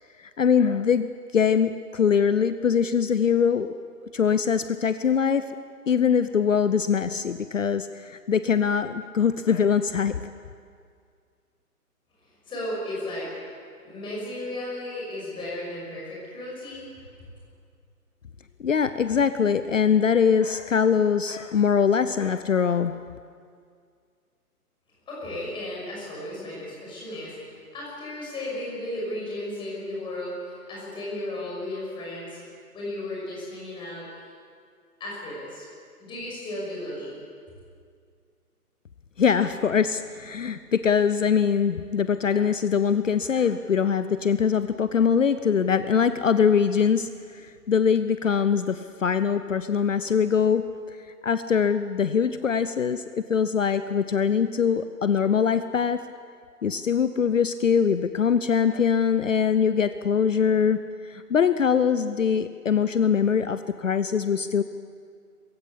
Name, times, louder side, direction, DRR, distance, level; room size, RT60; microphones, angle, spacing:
voice 1, 0.2-3.8 4.1-5.5 5.9-10.1 18.6-22.9 39.2-50.6 51.2-56.0 56.6-64.6, left 7 dB, 55° left, 12 dB, 0.8 m, -23 dB
voice 2, 12.4-13.4 13.8-16.9 25.1-32.4 32.7-34.1 35.0-35.6 36.0-37.1, left 1 dB, 10° left, -5 dB, 6.0 m, -34 dB
22.0 x 15.5 x 8.4 m, 2.1 s
figure-of-eight pair, 135°, 46 cm